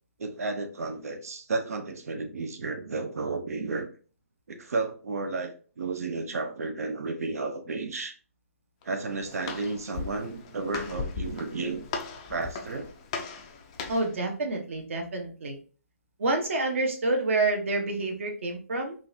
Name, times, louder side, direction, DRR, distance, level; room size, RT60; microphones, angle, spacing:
voice 1, 0.2-3.9 4.5-8.1 8.8-11.8 12.3-12.9, right 3 dB, 70° right, 0.6 m, -32 dB
Walk footsteps, 8.8-14.2, left 5 dB, 20° left, 0.3 m, -38 dB
voice 2, 13.9-15.6 16.2-19.0, right 2 dB, 55° right, 1.0 m, -28 dB
3.8 x 2.4 x 2.6 m
hypercardioid pair, 165°, 8 cm